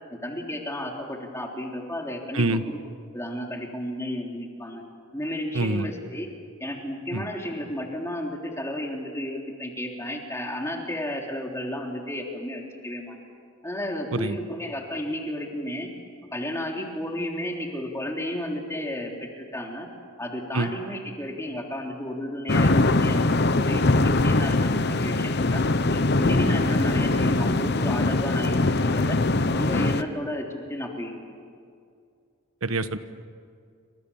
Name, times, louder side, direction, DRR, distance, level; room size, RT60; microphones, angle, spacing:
voice 1, 0.1-2.8 3.1-4.8 5.1-6.3 6.6-13.1 13.6-15.9 16.3-19.9 20.2-29.2 29.5-31.1 31.5-31.6, left 1 dB, 15° left, 0 dB, 3.4 m, -33 dB
voice 2, 5.5-5.9 7.1-7.2 14.1-14.4 20.5-20.7 32.6-33.0, right 2 dB, 80° right, 11 dB, 1.3 m, -25 dB
sound 1, 22.5-30.0, left 2 dB, 50° left, 0.9 m, -22 dB
29.0 x 26.0 x 7.3 m, 2.2 s
head